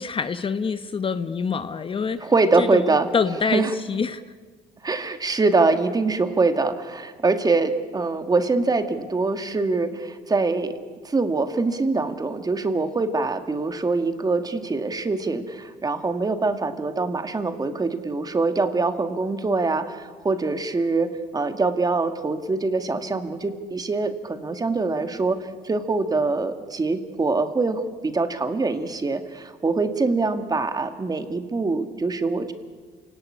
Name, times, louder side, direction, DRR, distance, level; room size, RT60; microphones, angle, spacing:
voice 1, 0.0-2.3 2.6-3.6 3.9-4.2, left 5 dB, 30° left, 11 dB, 1.0 m, -26 dB
voice 2, 2.2-3.1 3.5-3.7 4.8-10.7 11.0-25.4 25.6-32.5, right 3 dB, 20° right, 8 dB, 2.0 m, -24 dB
28.5 x 18.0 x 10.0 m, 1.5 s
cardioid pair, 110°, 17 cm